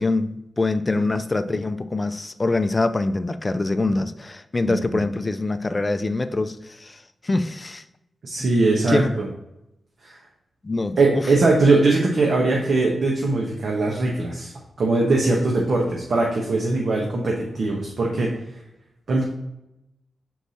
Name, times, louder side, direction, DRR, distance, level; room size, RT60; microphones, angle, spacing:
voice 1, 0.0-7.8 8.9-9.1 10.6-11.2, left 2 dB, 30° left, 0.4 m, -24 dB
voice 2, 4.7-5.0 8.2-9.3 10.0-10.2 11.0-14.5 14.8-18.3 19.1-19.2, right 3 dB, 70° right, 1.1 m, -21 dB
5.8 x 4.6 x 4.1 m
cardioid pair, 65°, 0 cm